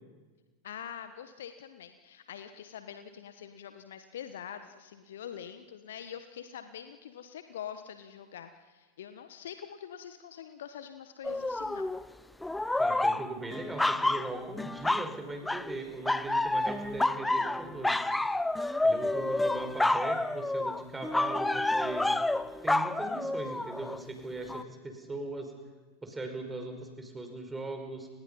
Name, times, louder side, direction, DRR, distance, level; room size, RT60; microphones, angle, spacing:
voice 1, 0.6-11.9, left 9 dB, 60° left, 9 dB, 1.3 m, -44 dB
sound 1, 11.2-12.0 12.4-15.1 15.4-15.8 16.0-24.0 24.5-24.6, left 2 dB, 5° left, 0.8 m, -29 dB
voice 2, 12.8-18.1 18.8-22.1 22.6-25.5 26.0-28.1, right 2 dB, 10° right, 5 dB, 5.2 m, -39 dB
30.0 x 26.5 x 5.6 m, 1.4 s
figure-of-eight pair, 90°, 0 cm